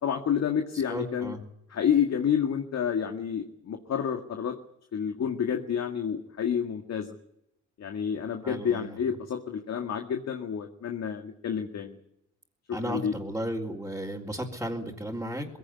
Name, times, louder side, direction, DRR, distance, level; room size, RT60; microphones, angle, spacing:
voice 1, 0.0-1.3 1.7-4.6 4.9-7.1 7.8-12.0 12.8-13.1, left 8 dB, 60° left, 5 dB, 2.0 m, -29 dB
voice 2, 0.9-1.4 8.4-9.0 12.7-15.6, equal, 5° right, -6 dB, 3.7 m, -34 dB
21.5 x 16.5 x 9.7 m, 0.79 s
cardioid pair, 85°, 29 cm